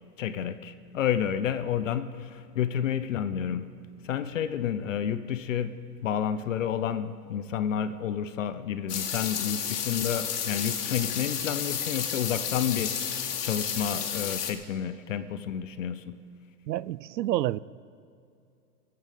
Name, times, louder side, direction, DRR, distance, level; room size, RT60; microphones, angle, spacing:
voice 1, 0.2-3.7 4.0-16.2, left 9 dB, 50° left, 12 dB, 0.8 m, -30 dB
sound 1, 8.9-14.5, left 8 dB, 70° left, 2.0 m, -31 dB
voice 2, 16.7-17.6, right 14 dB, 90° right, 20 dB, 0.6 m, -28 dB
20.5 x 8.9 x 6.9 m, 2.4 s
hypercardioid pair, 170°, 49 cm